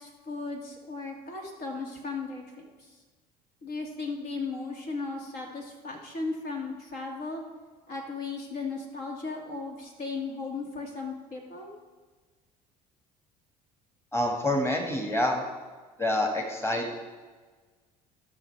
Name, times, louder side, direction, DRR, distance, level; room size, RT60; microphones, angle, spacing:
voice 1, 0.0-3.0 3.6-7.4 7.9-11.7, left 3 dB, 55° left, 0 dB, 2.4 m, -36 dB
voice 2, 14.1-15.4 16.0-17.0, left 1 dB, 15° left, 2 dB, 2.1 m, -27 dB
18.5 x 6.5 x 3.5 m, 1.4 s
hypercardioid pair, 60°, 20 cm